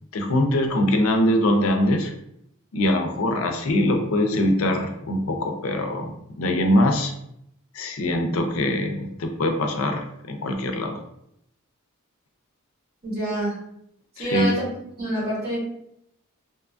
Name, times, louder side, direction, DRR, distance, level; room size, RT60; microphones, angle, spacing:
voice 1, 0.1-2.1 2.7-7.1 7.7-11.0 14.2-14.6, left 1 dB, 70° left, 4 dB, 0.4 m, -23 dB
voice 2, 13.0-13.6 14.2-14.7 15.0-15.6, right 1 dB, 45° right, -8 dB, 1.3 m, -26 dB
2.8 x 2.3 x 2.4 m, 0.76 s
head